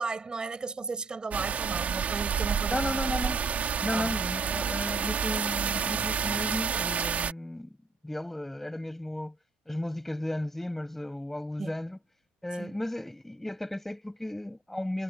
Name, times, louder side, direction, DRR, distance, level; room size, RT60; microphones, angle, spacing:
voice 1, 0.0-3.2 3.9-4.2 11.6-11.7 12.6-12.8, right 4 dB, 20° right, 7.7 m, -35 dB
sound 1, 1.3-7.3, right 7 dB, 40° right, 3.4 m, -29 dB
voice 2, 2.7-3.4 3.8-7.7 8.0-9.3 9.7-12.0 12.4-15.0, left 1 dB, 5° left, 6.6 m, -34 dB
supercardioid pair, 100°, 4 cm